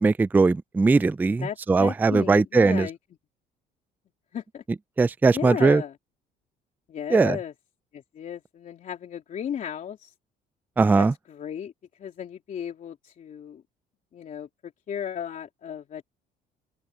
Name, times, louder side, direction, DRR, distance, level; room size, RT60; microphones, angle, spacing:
voice 1, 0.0-2.9 5.0-5.8 7.1-7.4 10.8-11.1, right 4 dB, 10° right, 0.3 m, -20 dB
voice 2, 1.4-3.0 4.3-4.6 5.3-5.9 6.9-7.5 7.9-10.1 10.9-11.7 12.0-13.6 14.1-16.0, left 8 dB, 50° left, 3.2 m, -35 dB
open air
cardioid pair, 110°, 17 cm